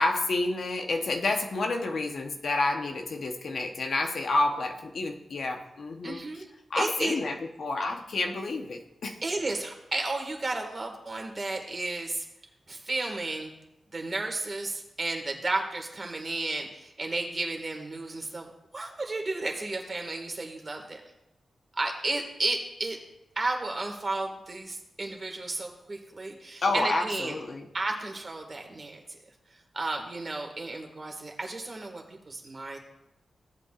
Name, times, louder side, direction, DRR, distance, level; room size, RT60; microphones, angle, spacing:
voice 1, 0.0-6.2 6.7-9.2 26.6-27.7, left 2 dB, 65° left, 3 dB, 1.0 m, -29 dB
voice 2, 6.0-6.5 6.8-7.2 9.2-12.3 12.7-13.5 13.9-21.0 21.8-23.0 23.4-27.4 27.7-29.0 29.7-32.8, right 2 dB, 35° right, 3 dB, 1.9 m, -33 dB
16.0 x 8.3 x 2.5 m, 0.88 s
wide cardioid pair, 95°, 0 cm